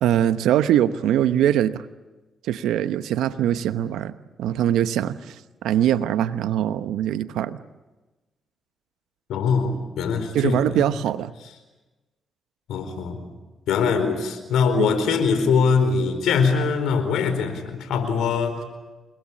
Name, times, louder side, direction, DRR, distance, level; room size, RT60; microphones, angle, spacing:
voice 1, 0.0-1.9 2.4-7.6 10.3-11.3 14.8-14.9, right 11 dB, 80° right, 13 dB, 0.9 m, -22 dB
voice 2, 9.3-10.9 12.7-13.2 13.7-18.6, left 5 dB, 80° left, 8 dB, 4.5 m, -22 dB
29.5 x 20.0 x 8.8 m, 1.1 s
supercardioid pair, 45°, 0 cm